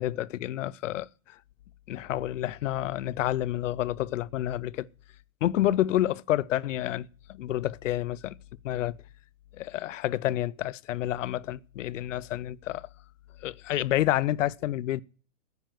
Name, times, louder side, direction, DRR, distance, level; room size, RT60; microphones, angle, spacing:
voice 1, 0.0-1.4 1.9-4.9 5.4-8.3 8.6-9.0 9.6-12.9 13.4-15.0, left 13 dB, 60° left, 0.6 m, -29 dB
9.6 x 9.5 x 7.6 m
supercardioid pair, 175°, 42 cm